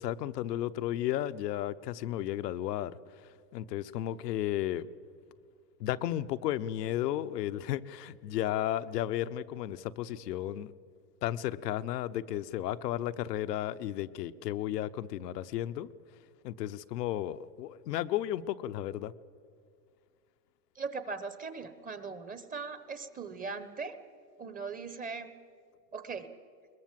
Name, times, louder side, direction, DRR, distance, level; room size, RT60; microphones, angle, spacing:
voice 1, 0.0-3.0 3.5-4.9 5.8-10.7 11.2-15.9 16.4-19.1, left 12 dB, 80° left, 13 dB, 0.9 m, -33 dB
voice 2, 20.8-24.0 24.4-25.3 25.9-26.3, right 4 dB, 15° right, 12 dB, 1.0 m, -39 dB
21.5 x 21.0 x 7.5 m, 2.3 s
supercardioid pair, 125°, 48 cm